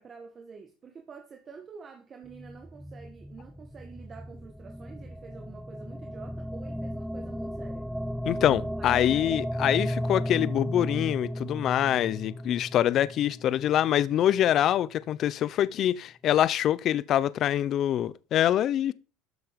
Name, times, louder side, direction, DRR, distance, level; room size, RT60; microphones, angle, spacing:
voice 1, 0.0-7.9 8.8-9.4, right 5 dB, 30° right, 1.5 m, -48 dB
sound 1, 2.2-14.5, equal, ahead, 0.4 m, -35 dB
voice 2, 8.2-18.9, left 11 dB, 45° left, 0.6 m, -25 dB
12.5 x 7.0 x 5.2 m
supercardioid pair, 125°, 0 cm